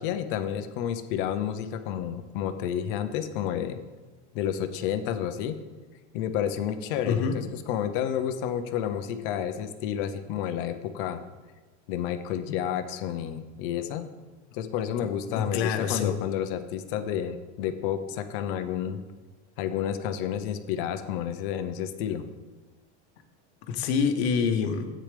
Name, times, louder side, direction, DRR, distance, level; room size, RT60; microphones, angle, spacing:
voice 1, 0.0-3.8 4.3-5.6 6.1-11.2 11.9-14.1 14.5-19.0 19.6-22.2, left 9 dB, 50° left, 9 dB, 0.8 m, -30 dB
voice 2, 7.1-7.4 15.0-16.2 23.7-24.9, left 6 dB, 65° left, 7 dB, 1.2 m, -27 dB
13.5 x 8.8 x 3.4 m, 1.2 s
supercardioid pair, 170°, 35 cm